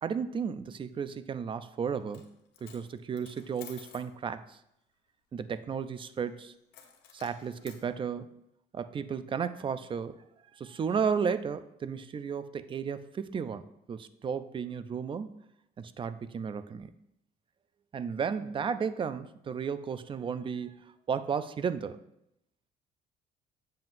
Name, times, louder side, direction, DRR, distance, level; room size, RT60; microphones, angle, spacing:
voice 1, 0.0-2.3 2.6-4.6 5.3-6.5 7.1-8.4 8.7-10.2 10.5-15.4 15.8-16.9 17.9-22.0, right 6 dB, 30° right, 13 dB, 0.4 m, -34 dB
Coin (dropping), 2.0-2.3 2.5-4.1 6.7-7.8, left 8 dB, 80° left, 1.1 m, -52 dB
7.7 x 7.3 x 2.6 m, 0.81 s
cardioid pair, 110°, 17 cm